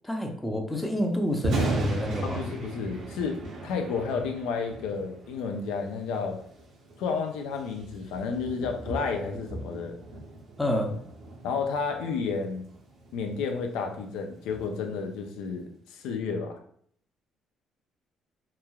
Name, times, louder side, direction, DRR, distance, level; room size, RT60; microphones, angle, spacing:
voice 1, 0.0-2.5 10.6-10.9, equal, 10° left, 2 dB, 0.5 m, -29 dB
Thunder, 1.3-15.4, right 2 dB, 65° right, 0.6 m, -37 dB
voice 2, 2.2-6.4 7.0-10.0 10.7-10.8 11.4-12.6 13.1-16.6, left 5 dB, 85° left, 4 dB, 0.4 m, -31 dB
3.0 x 2.3 x 2.2 m, 0.62 s
cardioid pair, 95°, 0 cm